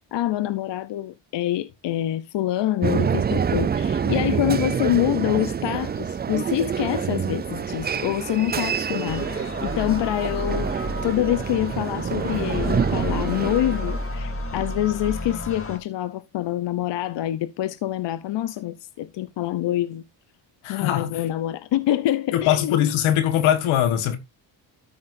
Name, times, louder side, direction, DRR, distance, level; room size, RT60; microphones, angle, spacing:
voice 1, 0.1-10.7 11.0-20.0 20.7-22.8, left 13 dB, 60° left, 0.8 m, -26 dB
sound 1, 2.8-14.1, right 7 dB, 20° right, 0.4 m, -26 dB
sound 2, 9.1-15.8, left 1 dB, 25° left, 2.6 m, -31 dB
voice 2, 20.6-21.3 22.3-24.2, left 11 dB, 85° left, 1.6 m, -21 dB
13.5 x 5.9 x 2.7 m
supercardioid pair, 75°, 48 cm